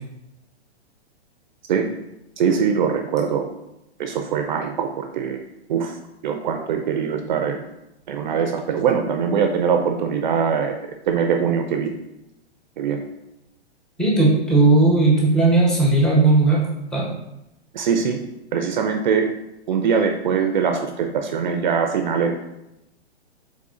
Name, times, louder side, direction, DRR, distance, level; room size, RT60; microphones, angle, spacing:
voice 1, 2.4-3.5 4.0-6.0 6.2-7.6 8.1-10.8 11.1-11.9 12.8-13.0 17.7-18.2 18.5-19.3 19.7-22.4, right 6 dB, 45° right, 5 dB, 0.4 m, -22 dB
voice 2, 14.0-16.6 16.9-17.1, right 2 dB, ahead, -5 dB, 0.6 m, -16 dB
3.7 x 3.7 x 3.7 m, 0.89 s
hypercardioid pair, 140°, 34 cm